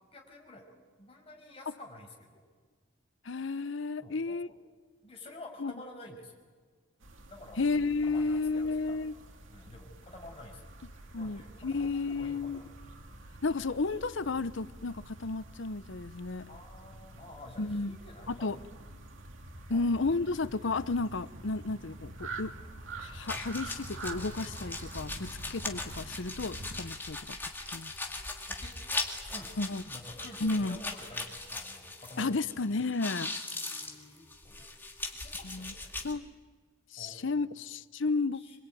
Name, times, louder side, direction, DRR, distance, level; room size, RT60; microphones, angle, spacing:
voice 1, 0.1-0.7 1.0-2.5 4.0-4.4 5.0-6.3 7.3-7.7 8.1-9.0 9.5-10.6 11.2-11.5 11.8-12.7 16.5-18.6 19.7-19.8 28.6-28.7 29.2-29.6 29.9-32.4 33.6-34.7 35.2-35.9 37.0-37.2 38.3-38.6, left 1 dB, 30° left, 5.9 m, -50 dB
voice 2, 3.2-4.5 5.6-5.7 7.6-9.1 11.1-12.6 13.4-16.5 17.6-18.0 18.3-18.6 19.7-22.5 23.0-27.4 27.7-27.9 29.6-29.8 30.4-30.8 32.2-33.3 35.4-35.7 36.0-36.3 36.9-38.4, left 3 dB, 70° left, 0.8 m, -32 dB
sound 1, 7.0-26.9, right 2 dB, 75° right, 2.5 m, -47 dB
sound 2, 23.3-32.6 32.8-36.1, left 2 dB, 10° left, 2.3 m, -39 dB
26.5 x 23.0 x 9.3 m
head